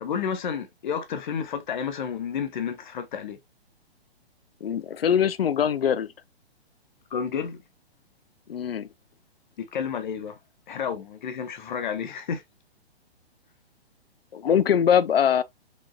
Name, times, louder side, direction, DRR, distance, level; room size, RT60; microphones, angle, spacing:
voice 1, 0.0-3.4 7.1-7.6 9.6-10.4 10.7-12.4, left 7 dB, 45° left, 0.9 m, -31 dB
voice 2, 4.6-6.1 8.5-8.9 14.3-15.4, left 8 dB, 65° left, 0.5 m, -22 dB
5.2 x 3.7 x 2.2 m
figure-of-eight pair, 120°, 32 cm